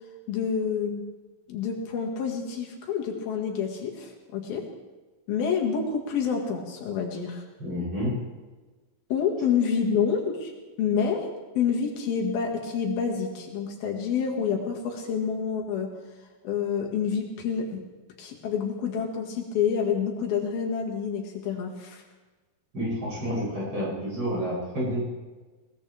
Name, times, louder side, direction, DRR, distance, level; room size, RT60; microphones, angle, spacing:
voice 1, 0.3-1.0 1.5-4.6 5.3-7.4 9.1-10.5 10.8-11.3 11.6-15.9 16.4-17.8 18.2-22.0, left 6 dB, 85° left, 0 dB, 3.8 m, -28 dB
voice 2, 7.6-8.2 22.7-25.0, equal, 30° right, -7 dB, 8.5 m, -29 dB
21.0 x 19.5 x 3.4 m, 1.3 s
omnidirectional pair, 4.2 m